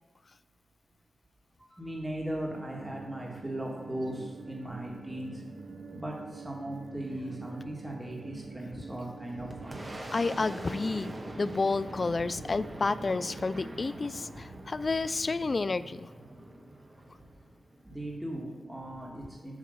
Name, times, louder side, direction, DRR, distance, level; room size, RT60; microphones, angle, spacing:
voice 1, 1.6-5.4 5.9-9.9 17.8-19.6, right 1 dB, 15° right, -2 dB, 1.8 m, -38 dB
sound 1, 2.5-13.4, right 4 dB, 85° right, 0.7 m, -46 dB
Boom, 8.8-18.2, right 1 dB, 35° right, 1.3 m, -44 dB
voice 2, 10.1-16.1, left 3 dB, 50° left, 15 dB, 0.3 m, -30 dB
9.0 x 3.1 x 6.5 m, 1.3 s
cardioid pair, 50°, 0 cm